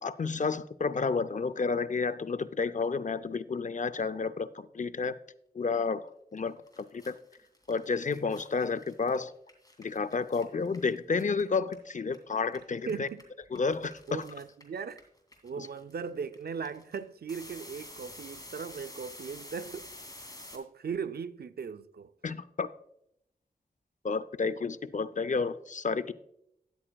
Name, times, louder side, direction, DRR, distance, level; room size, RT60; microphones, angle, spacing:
voice 1, 0.0-5.2 5.5-7.1 7.7-9.3 9.8-13.1 13.5-14.2 15.6-15.7 22.2-22.7 24.0-26.1, left 4 dB, 50° left, 0.5 m, -31 dB
sound 1, 6.4-6.5 6.7-12.2 12.4-20.6, left 1 dB, 25° left, 2.5 m, -49 dB
voice 2, 12.9-13.2 14.1-15.0 15.4-19.9 20.2-22.1 25.4-25.5, right 6 dB, 75° right, 0.4 m, -38 dB
13.0 x 9.9 x 2.3 m
wide cardioid pair, 65°, 16 cm